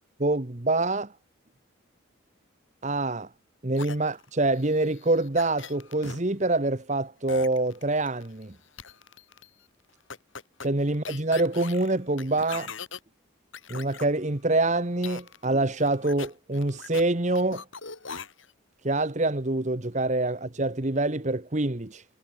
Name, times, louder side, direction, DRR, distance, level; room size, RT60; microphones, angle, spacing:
voice 1, 0.2-1.1 2.8-3.3 3.6-8.5 10.6-12.7 13.7-17.6 18.8-22.0, right 2 dB, 35° right, 1.2 m, -26 dB
sound 1, 3.8-6.2 7.3-8.4 8.8-9.5 10.1-13.0 13.5-14.1 15.0-15.5 15.8-17.1 17.4-18.5, left 5 dB, 70° left, 4.0 m, -41 dB
head